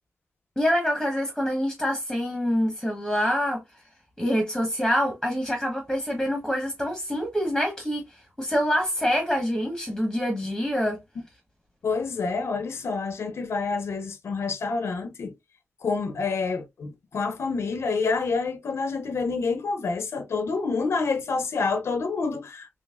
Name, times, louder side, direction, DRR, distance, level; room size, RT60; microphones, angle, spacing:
voice 1, 0.6-3.6 4.2-11.0, equal, ahead, 1.1 m, -26 dB
voice 2, 11.8-15.3 15.8-22.7, left 4 dB, 75° left, 0.6 m, -28 dB
4.0 x 3.1 x 2.3 m
wide cardioid pair, 170°, 5 cm